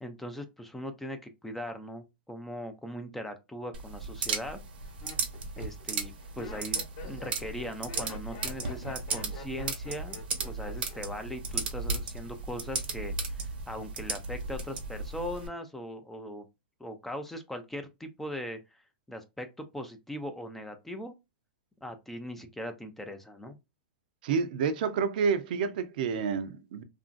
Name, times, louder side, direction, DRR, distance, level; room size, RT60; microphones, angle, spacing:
voice 1, 0.0-4.6 5.6-16.5 16.8-18.8 19.1-21.1 21.8-23.6, equal, 5° left, 0.3 m, -40 dB
Laughter, 3.6-4.0 4.6-11.3 11.5-12.0, left 5 dB, 40° left, 0.9 m, -47 dB
sound 1, 3.7-15.5, right 4 dB, 75° right, 0.8 m, -35 dB
voice 2, 24.2-26.8, right 6 dB, 60° right, 0.5 m, -29 dB
2.9 x 2.5 x 2.4 m
hypercardioid pair, 145°, 5 cm